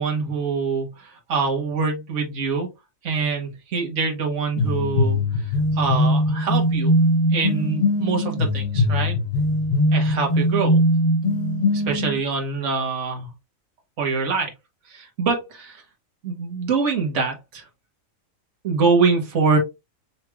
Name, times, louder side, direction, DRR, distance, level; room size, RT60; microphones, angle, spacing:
voice 1, 0.0-2.7 3.0-5.2 5.8-6.9 7.3-9.2 9.9-10.8 11.7-13.3 14.0-14.5 14.9-15.8 16.2-17.6 18.6-19.6, right 4 dB, 65° right, 1.5 m, -24 dB
sound 1, 4.6-12.2, left 1 dB, 35° left, 1.1 m, -21 dB
5.6 x 3.2 x 2.3 m
omnidirectional pair, 1.4 m